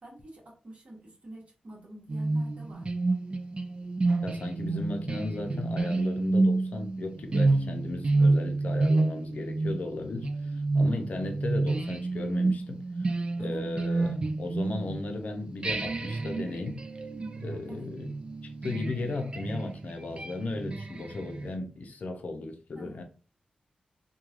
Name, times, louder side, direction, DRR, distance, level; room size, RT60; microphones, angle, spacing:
voice 1, 0.0-2.9 10.8-11.2 13.4-13.8 17.7-17.9 22.7-23.0, right 1 dB, 55° right, 1.1 m, -47 dB
sound 1, 2.1-15.2 15.6-21.5, right 2 dB, 40° right, 0.3 m, -29 dB
voice 2, 4.2-16.8 17.4-18.1 18.4-23.0, left 2 dB, 65° left, 0.5 m, -36 dB
3.0 x 2.2 x 2.4 m
wide cardioid pair, 85°, 3 cm